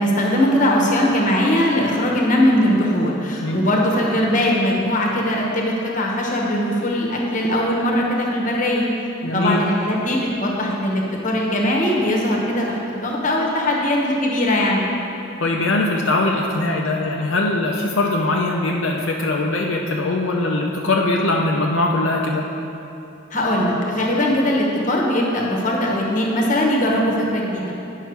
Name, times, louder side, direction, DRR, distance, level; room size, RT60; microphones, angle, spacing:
voice 1, 0.0-8.9 9.3-14.8 23.3-27.7, left 1 dB, 40° left, -2 dB, 1.1 m, -20 dB
voice 2, 9.2-9.6 15.4-22.5, left 2 dB, 75° left, -1 dB, 0.6 m, -21 dB
9.5 x 5.6 x 4.6 m, 2.8 s
head